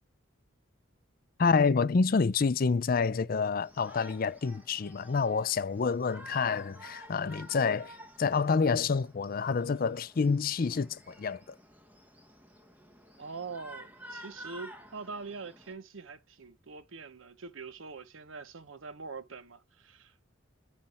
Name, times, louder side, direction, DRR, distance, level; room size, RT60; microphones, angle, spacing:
voice 1, 1.4-11.6, left 5 dB, 45° left, 0.4 m, -28 dB
Shout, 3.6-15.7, right 1 dB, 10° right, 1.0 m, -51 dB
voice 2, 13.2-20.2, right 4 dB, 80° right, 0.8 m, -44 dB
9.6 x 3.2 x 4.2 m
head